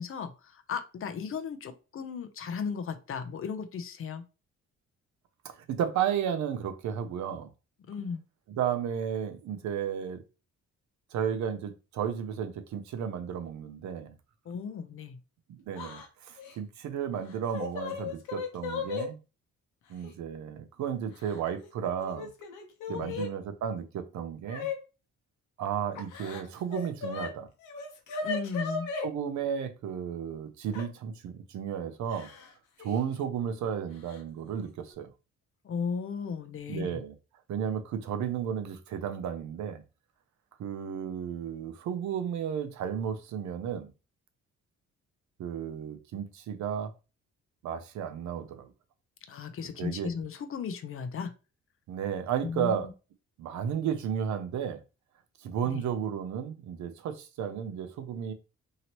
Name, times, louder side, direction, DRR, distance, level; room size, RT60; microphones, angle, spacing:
voice 1, 0.0-4.2 7.9-8.2 14.4-15.2 22.9-23.2 28.2-28.9 35.6-37.0 49.2-51.3 52.4-52.9 55.6-55.8, left 6 dB, 45° left, 0.5 m, -36 dB
voice 2, 5.4-7.5 8.6-10.2 11.1-14.1 15.5-19.2 19.9-22.3 22.9-24.7 25.6-27.5 29.0-32.3 32.8-35.1 36.7-37.1 37.5-39.8 40.6-43.9 45.4-46.9 47.6-48.7 49.8-50.1 51.9-52.9 53.4-54.8 55.4-58.3, right 8 dB, 70° right, 0.6 m, -33 dB
Yell / Crying sobbing, 15.7-16.1 16.4-16.5 17.3-19.1 20.0-20.1 21.1-21.7 22.0-23.3 24.5-24.8 25.9-27.3 27.6-29.1 30.7-30.9 32.1-32.5 32.8-33.0 34.1-34.2 34.6-34.9, left 4 dB, 90° left, 0.8 m, -36 dB
2.8 x 2.8 x 2.9 m
cardioid pair, 90°, 30 cm